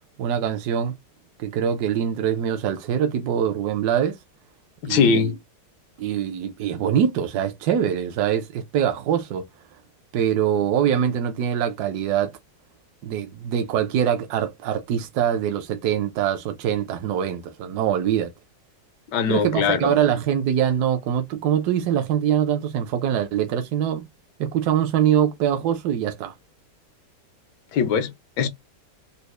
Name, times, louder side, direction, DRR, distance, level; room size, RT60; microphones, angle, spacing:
voice 1, 0.2-0.9 1.4-4.2 4.9-5.3 6.0-9.5 10.1-12.3 13.0-18.3 19.3-24.1 24.4-26.3, right 9 dB, 75° right, 1.1 m, -23 dB
voice 2, 4.8-5.4 19.1-20.0 27.7-28.5, left 6 dB, 80° left, 1.3 m, -21 dB
4.0 x 2.0 x 3.1 m
omnidirectional pair, 1.9 m